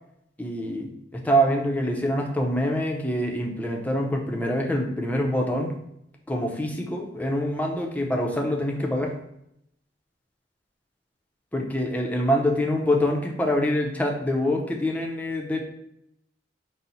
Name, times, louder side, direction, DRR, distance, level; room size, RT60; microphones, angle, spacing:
voice 1, 0.4-5.7 6.3-9.1 11.5-15.6, equal, 10° left, 0 dB, 0.5 m, -25 dB
4.1 x 2.0 x 4.0 m, 0.79 s
head